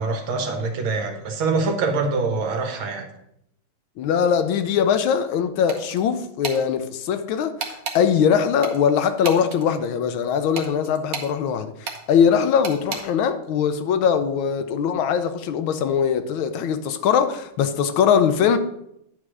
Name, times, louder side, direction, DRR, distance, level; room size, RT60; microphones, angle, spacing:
voice 1, 0.0-3.1, right 3 dB, 85° right, 2.0 m, -24 dB
voice 2, 4.0-18.6, left 7 dB, 85° left, 1.5 m, -21 dB
sound 1, 5.7-6.0 6.4-6.6 7.6-8.0 8.6-9.6 10.5-11.3 11.8-12.0 12.6-13.0, right 5 dB, 50° right, 1.3 m, -31 dB
9.7 x 3.3 x 6.2 m
omnidirectional pair, 2.2 m